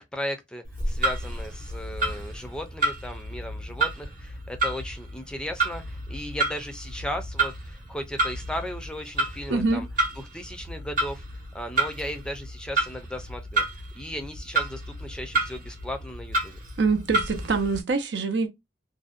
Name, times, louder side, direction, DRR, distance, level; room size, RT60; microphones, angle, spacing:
voice 1, 0.0-9.9 10.2-11.2 11.5-13.6 13.9-16.6, equal, 5° left, 0.4 m, -36 dB
Clock, 0.6-17.8, right 2 dB, 50° right, 0.7 m, -30 dB
voice 2, 9.5-9.8 16.8-18.5, right 4 dB, 85° right, 0.6 m, -24 dB
2.6 x 2.1 x 2.4 m
head